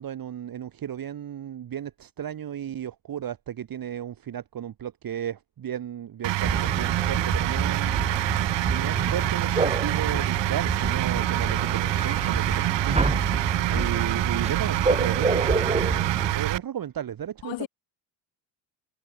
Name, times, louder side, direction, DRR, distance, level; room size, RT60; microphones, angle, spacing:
voice 1, 0.0-8.0 8.3-13.1 13.7-17.7, right 10 dB, 45° right, 1.6 m, -34 dB
sound 1, 6.2-16.6, right 17 dB, 65° right, 0.7 m, -26 dB
sound 2, 6.4-16.3, right 3 dB, 15° right, 1.6 m, -29 dB
voice 2, 13.7-14.1 17.4-17.7, left 17 dB, 65° left, 0.9 m, -36 dB
cardioid pair, 90°, 47 cm